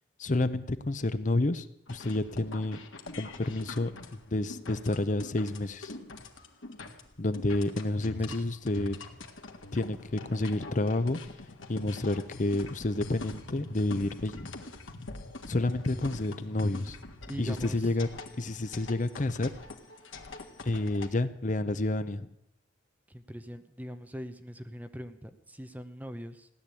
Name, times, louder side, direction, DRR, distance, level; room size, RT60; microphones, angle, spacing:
voice 1, 0.2-2.8 3.2-6.0 7.2-9.0 9.7-11.2 11.7-14.5 15.5-17.0 17.4-18.1 18.4-19.5 20.6-22.3, left 2 dB, 40° left, 12 dB, 0.7 m, -30 dB
sound 1, 1.9-21.1, left 2 dB, 85° left, 1.8 m, -44 dB
voice 2, 17.3-17.8 23.1-26.5, equal, 10° right, 8 dB, 0.8 m, -42 dB
16.5 x 10.5 x 8.4 m, 0.79 s
head